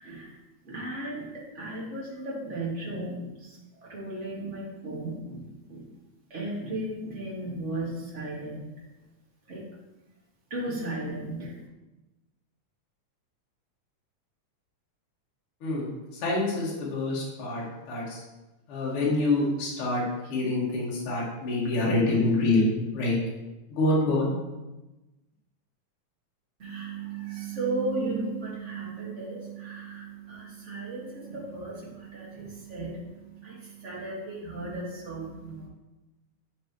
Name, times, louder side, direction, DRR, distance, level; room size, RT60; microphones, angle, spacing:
voice 1, 0.0-0.3 0.6-5.8 6.3-8.7 9.5-9.6 10.5-11.6 26.6-35.7, right 2 dB, 30° right, -5 dB, 1.5 m, -35 dB
voice 2, 16.1-18.2 18.7-20.0 20.3-23.1 23.7-24.3 28.1-28.2, left 2 dB, 50° left, -5 dB, 2.2 m, -26 dB
8.8 x 4.9 x 2.9 m, 1.0 s
omnidirectional pair, 3.6 m